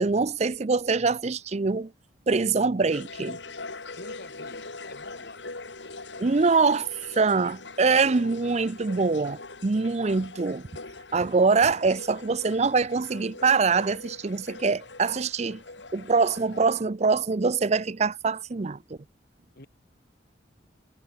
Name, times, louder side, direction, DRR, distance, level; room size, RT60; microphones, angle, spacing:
voice 1, 0.0-1.9 2.3-3.4 6.2-10.7 11.1-15.6 15.9-18.8, right 4 dB, 35° right, 0.5 m, -24 dB
sound 1, 2.9-16.8, left 3 dB, 80° left, 3.4 m, -42 dB
voice 2, 4.0-5.4 19.5-19.7, left 2 dB, 55° left, 5.6 m, -47 dB
head